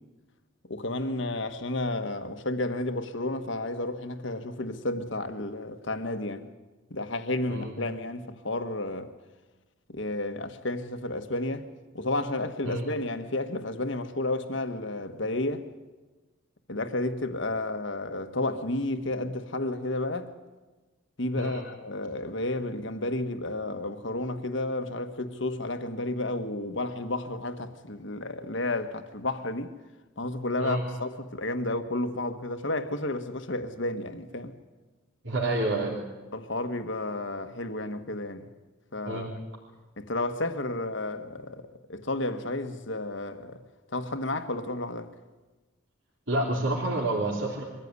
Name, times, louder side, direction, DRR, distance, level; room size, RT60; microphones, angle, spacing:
voice 1, 0.7-6.5 6.9-9.1 9.9-11.7 11.9-15.7 16.7-20.3 21.2-29.7 30.2-34.5 36.3-38.5 38.9-39.4 40.0-43.6 43.9-45.1, left 2 dB, 60° left, 1.5 m, -32 dB
voice 2, 35.2-36.0 39.1-39.3 46.3-47.6, right 2 dB, 65° right, 3.5 m, -28 dB
23.5 x 15.0 x 9.7 m
head